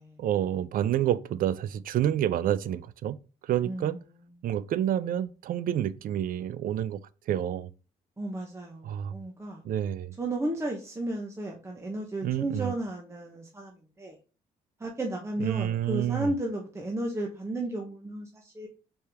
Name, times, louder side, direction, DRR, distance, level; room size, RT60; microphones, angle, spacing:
voice 1, 0.2-3.2 3.4-4.0 4.4-7.0 7.3-7.7 8.8-9.1 9.6-10.1 12.2-12.7 15.4-16.3, right 11 dB, 60° right, 0.4 m, -28 dB
voice 2, 3.6-4.0 8.2-9.6 10.2-14.2 14.8-18.7, right 1 dB, 15° right, 0.8 m, -34 dB
4.4 x 3.3 x 3.4 m
cardioid pair, 90°, 16 cm